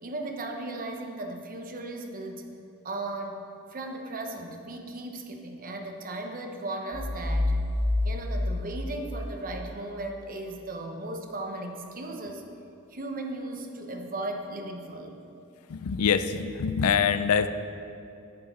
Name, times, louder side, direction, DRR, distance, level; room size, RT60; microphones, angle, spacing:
voice 1, 0.0-2.5 2.8-3.4 3.7-7.5 8.0-12.4 12.9-15.2, right 2 dB, 40° right, 3 dB, 0.9 m, -36 dB
sound 1, 6.9-9.6, left 1 dB, 10° left, 2.1 m, -28 dB
voice 2, 15.7-17.5, left 7 dB, 75° left, 11 dB, 0.4 m, -24 dB
10.5 x 8.3 x 4.3 m, 2.6 s
head